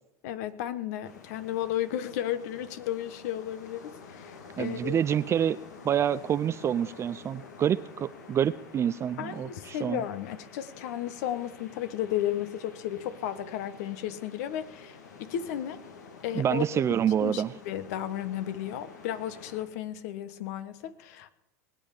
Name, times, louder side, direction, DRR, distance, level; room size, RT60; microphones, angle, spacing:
voice 1, 0.2-5.0 9.2-15.8 16.2-16.6 17.2-21.3, left 11 dB, 70° left, 12 dB, 1.2 m, -34 dB
sound 1, 1.0-19.7, left 5 dB, 90° left, 2.3 m, -49 dB
voice 2, 4.6-5.6 5.8-10.0 16.3-17.5, right 9 dB, 30° right, 13 dB, 0.5 m, -27 dB
19.5 x 8.7 x 7.3 m, 0.88 s
hypercardioid pair, 100°, 9 cm